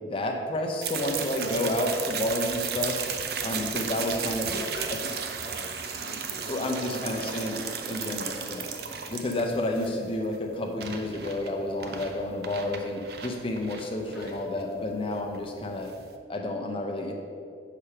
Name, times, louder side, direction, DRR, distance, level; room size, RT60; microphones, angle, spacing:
voice 1, 0.0-3.0 3.4-4.5 6.5-8.7 9.1-15.9 16.3-17.1, left 1 dB, 30° left, 1 dB, 0.6 m, -30 dB
sound 1, 0.8-16.2, right 7 dB, 55° right, 0.5 m, -35 dB
voice 2, 4.4-7.1 9.3-10.0 14.0-14.4, left 2 dB, 75° left, 0 dB, 0.8 m, -42 dB
5.9 x 3.4 x 5.7 m, 2.3 s
head